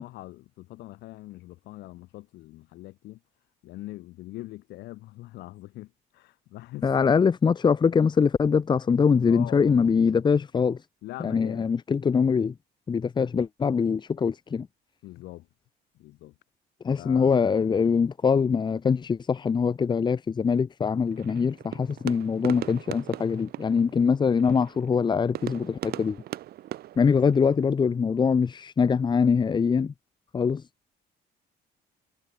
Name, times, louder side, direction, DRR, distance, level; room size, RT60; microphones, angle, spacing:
voice 1, 0.0-3.2 3.6-7.1 9.3-10.2 11.0-11.7 15.0-15.5 15.9-16.3 16.9-17.4, left 17 dB, 80° left, 4.9 m, -42 dB
voice 2, 6.8-10.8 11.2-12.5 12.9-14.7 16.8-26.2 27.0-29.9 30.3-30.6, left 6 dB, 25° left, 0.8 m, -23 dB
sound 1, 21.1-27.7, right 14 dB, 70° right, 1.7 m, -40 dB
cardioid pair, 110°, 17 cm